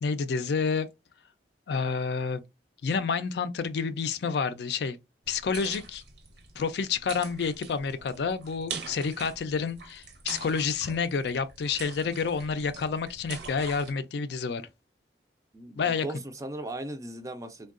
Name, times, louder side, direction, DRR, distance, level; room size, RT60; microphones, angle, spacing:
voice 1, 0.0-0.9 1.7-2.4 2.8-5.0 5.3-6.0 6.6-14.6 15.8-16.0, left 5 dB, 65° left, 0.4 m, -29 dB
sound 1, 5.2-13.9, right 5 dB, 65° right, 0.7 m, -44 dB
voice 2, 15.5-17.7, right 1 dB, 20° right, 0.4 m, -38 dB
3.5 x 2.2 x 2.4 m
head